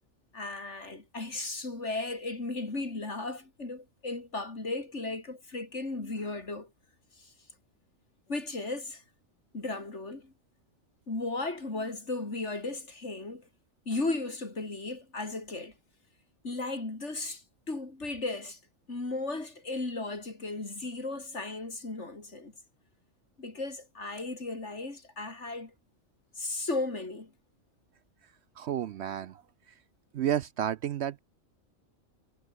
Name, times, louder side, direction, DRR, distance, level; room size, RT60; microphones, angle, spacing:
voice 1, 0.3-6.7 8.3-9.0 9.5-10.3 11.1-13.4 13.9-15.7 16.4-18.6 18.9-22.5 23.4-25.7 26.4-27.3, left 2 dB, 60° left, 4.1 m, -35 dB
voice 2, 28.6-29.7 30.1-31.2, right 10 dB, 65° right, 0.8 m, -32 dB
omnidirectional pair, 1.4 m